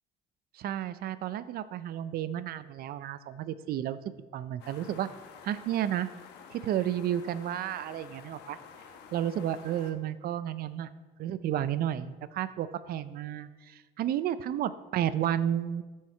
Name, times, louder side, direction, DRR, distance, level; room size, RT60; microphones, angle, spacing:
voice 1, 0.5-4.0 4.3-5.1 5.4-6.1 6.5-8.6 9.1-10.9 11.2-15.8, right 11 dB, 65° right, 14 dB, 0.5 m, -32 dB
sound 1, 4.6-9.9, left 6 dB, 90° left, 1.0 m, -50 dB
13.5 x 4.7 x 4.4 m, 1.3 s
cardioid pair, 110°, 17 cm